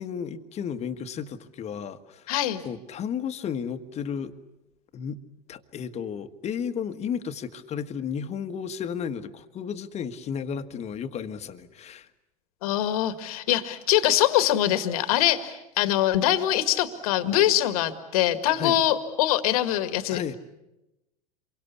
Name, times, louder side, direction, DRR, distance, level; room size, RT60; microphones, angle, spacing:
voice 1, 0.0-2.3 2.6-4.3 4.9-5.2 5.5-12.1 18.5-18.8 20.1-20.3, left 7 dB, 35° left, 10 dB, 1.6 m, -33 dB
voice 2, 2.3-2.6 12.6-20.3, left 12 dB, 70° left, 11 dB, 1.9 m, -23 dB
27.5 x 23.5 x 8.4 m, 0.93 s
hypercardioid pair, 95°, 19 cm